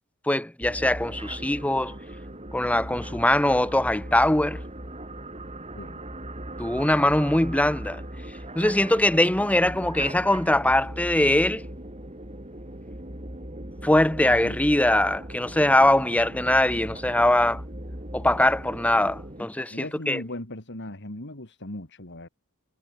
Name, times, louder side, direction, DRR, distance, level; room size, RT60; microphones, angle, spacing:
voice 1, 0.3-1.9 2.5-4.6 6.6-8.0 8.5-11.6 13.8-17.6 18.1-20.2, left 1 dB, 5° left, 0.8 m, -22 dB
sound 1, 0.6-19.4, right 1 dB, 30° right, 7.3 m, -39 dB
voice 2, 14.2-14.6 19.7-22.3, left 1 dB, 55° left, 3.5 m, -38 dB
head